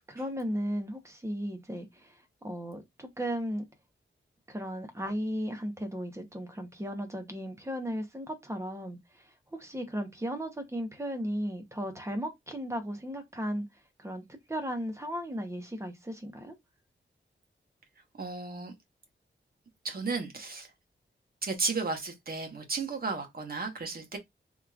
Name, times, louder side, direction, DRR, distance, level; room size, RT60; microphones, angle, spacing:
voice 1, 0.1-3.7 4.5-13.7 14.0-14.2 14.5-16.5, equal, 15° right, 0.9 m, -35 dB
voice 2, 18.1-18.7 19.8-20.7 21.4-24.2, right 4 dB, 50° right, 1.2 m, -34 dB
3.7 x 3.0 x 2.4 m
wide cardioid pair, 125°, 20 cm